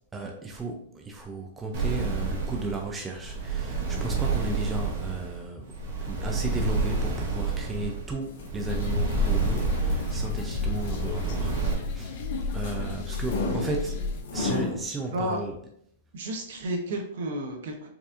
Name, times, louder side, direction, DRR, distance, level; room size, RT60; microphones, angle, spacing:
voice 1, 0.1-5.7 6.1-12.2 12.5-14.0 14.3-15.5, right 2 dB, 10° right, 1 dB, 0.4 m, -34 dB
sound 1, 1.7-11.7, right 4 dB, 50° right, 1.2 m, -29 dB
sound 2, 8.1-14.8, left 2 dB, 70° left, 1.2 m, -36 dB
sound 3, 8.7-14.2, left 3 dB, 45° left, 0.6 m, -31 dB
voice 2, 15.1-15.4 16.1-17.9, right 1 dB, 65° right, 3 dB, 0.9 m, -31 dB
4.7 x 2.6 x 2.5 m, 0.68 s
hypercardioid pair, 160°, 0 cm